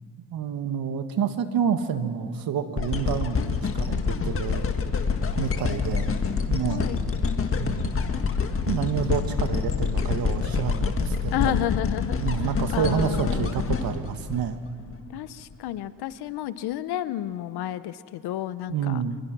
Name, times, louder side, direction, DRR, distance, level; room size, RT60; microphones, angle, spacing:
voice 1, 0.3-4.7 5.4-6.1 6.5-6.9 7.6-8.0 8.7-11.6 12.2-14.6 18.7-19.2, right 7 dB, 65° right, 8 dB, 1.8 m, -28 dB
sound 1, 2.8-15.0 15.5-15.6, left 5 dB, 35° left, 1.7 m, -27 dB
voice 2, 11.3-12.2 12.7-13.5 15.1-19.0, left 12 dB, 85° left, 14 dB, 1.0 m, -31 dB
24.5 x 23.5 x 6.1 m, 2.2 s
cardioid pair, 115°, 38 cm